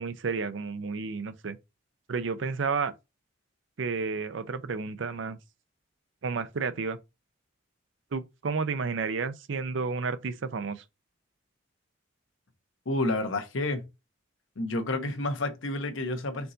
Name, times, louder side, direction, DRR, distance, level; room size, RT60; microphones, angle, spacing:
voice 1, 0.0-1.6 2.1-2.9 3.8-5.4 6.2-7.0 8.1-10.8, right 4 dB, 75° right, 0.5 m, -31 dB
voice 2, 12.9-13.9 14.6-16.5, left 2 dB, 85° left, 0.9 m, -30 dB
4.5 x 2.7 x 3.8 m
head